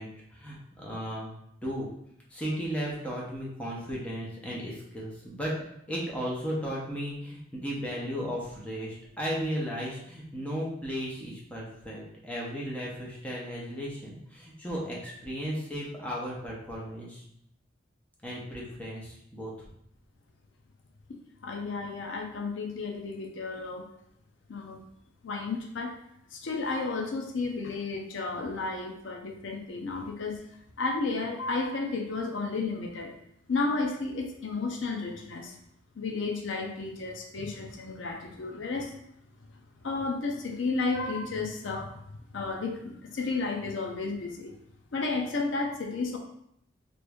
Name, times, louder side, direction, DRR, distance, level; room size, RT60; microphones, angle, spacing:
voice 1, 0.0-1.3 1.6-1.9 2.3-5.5 5.9-17.2 18.2-19.7, equal, 5° left, -5 dB, 0.7 m, -35 dB
voice 2, 21.4-23.8 24.5-24.8 25.2-25.9 26.3-30.4 30.8-33.1 33.5-35.5 36.0-38.9 39.8-42.0 42.3-44.5 44.9-46.2, left 3 dB, 80° left, 2 dB, 0.5 m, -32 dB
3.0 x 2.6 x 3.4 m, 0.74 s
head